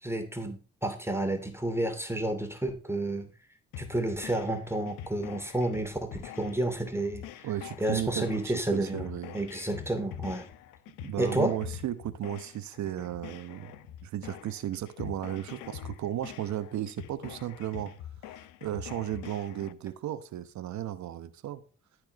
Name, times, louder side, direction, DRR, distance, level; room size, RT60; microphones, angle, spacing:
voice 1, 0.0-3.3 3.8-7.5 7.8-9.1 9.3-10.5 11.2-11.6, right 1 dB, 5° right, 6 dB, 2.6 m, -30 dB
sound 1, 3.7-19.7, left 10 dB, 70° left, 0.9 m, -45 dB
voice 2, 7.4-9.4 11.0-13.7 14.0-17.9 18.3-21.6, right 12 dB, 60° right, 13 dB, 1.1 m, -35 dB
14.0 x 4.9 x 6.0 m, 0.36 s
figure-of-eight pair, 40°, 33 cm